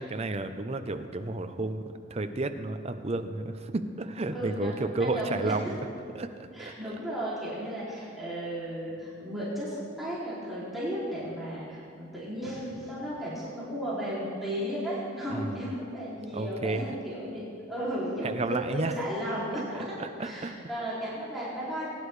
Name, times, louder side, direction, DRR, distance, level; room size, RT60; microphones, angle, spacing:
voice 1, 0.0-5.8 6.1-6.7 15.3-15.6 16.3-16.9 18.2-19.0 20.0-20.6, right 2 dB, 35° right, 8 dB, 0.6 m, -32 dB
voice 2, 4.3-5.6 6.5-19.8 20.2-21.9, equal, ahead, -10 dB, 2.7 m, -34 dB
21.0 x 10.0 x 3.3 m, 2.5 s
head